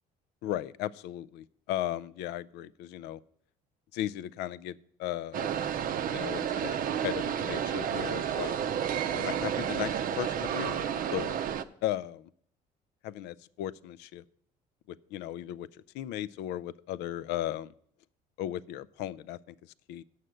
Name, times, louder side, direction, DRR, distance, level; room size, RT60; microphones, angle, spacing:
voice 1, 0.4-3.2 3.9-5.6 6.1-6.8 7.0-8.6 9.1-11.4 11.8-12.3 13.0-14.2 14.9-15.7 15.9-17.7 18.4-20.0, left 13 dB, 90° left, 20 dB, 0.4 m, -36 dB
sound 1, 5.3-11.6, right 9 dB, 55° right, 0.5 m, -31 dB
8.1 x 6.5 x 7.6 m, 0.65 s
cardioid pair, 110°, 17 cm